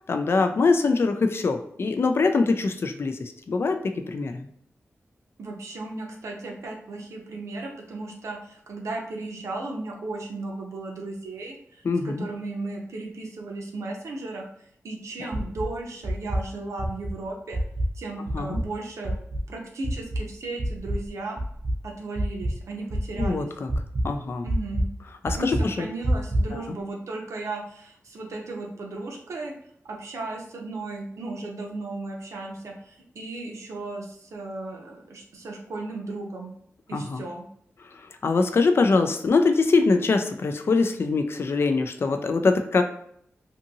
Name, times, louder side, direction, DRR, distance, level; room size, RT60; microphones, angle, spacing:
voice 1, 0.1-4.5 11.8-12.3 15.2-15.3 18.3-18.6 23.2-23.7 24.0-24.5 25.2-25.9 26.5-26.8 36.9-37.2 38.0-42.8, left 4 dB, 55° left, 6 dB, 0.4 m, -23 dB
voice 2, 5.4-17.6 17.9-19.2 19.5-21.4 21.8-23.5 24.4-24.9 25.4-29.5 29.8-36.5 36.9-37.5, right 2 dB, 85° right, 0 dB, 0.7 m, -35 dB
sound 1, 15.3-15.7 16.0-16.5 16.8-17.1 17.5-18.0 18.3-18.7 19.0-19.4 19.8-20.2 20.6-21.1 21.4-21.8 22.2-22.6 22.9-23.3 23.7-24.1 24.5-24.9 25.3-25.7 26.0-26.5, right 1 dB, 40° right, 0.6 m, -26 dB
2.7 x 2.6 x 2.6 m, 0.66 s
wide cardioid pair, 90°, 5 cm